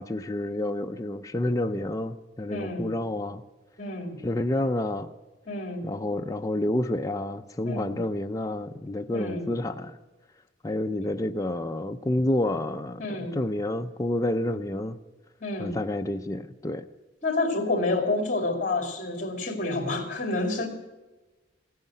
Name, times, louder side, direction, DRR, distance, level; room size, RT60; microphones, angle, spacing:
voice 1, 0.0-3.4 4.2-5.1 5.8-10.0 10.6-13.0 13.3-15.0 15.6-16.9, left 1 dB, 20° left, 6 dB, 0.4 m, -29 dB
voice 2, 2.5-2.9 3.8-4.2 5.5-5.9 7.6-8.0 9.1-9.5 13.0-13.4 15.4-15.8 17.2-20.7, left 2 dB, 40° left, 5 dB, 2.5 m, -29 dB
16.0 x 9.4 x 9.1 m, 1.2 s
head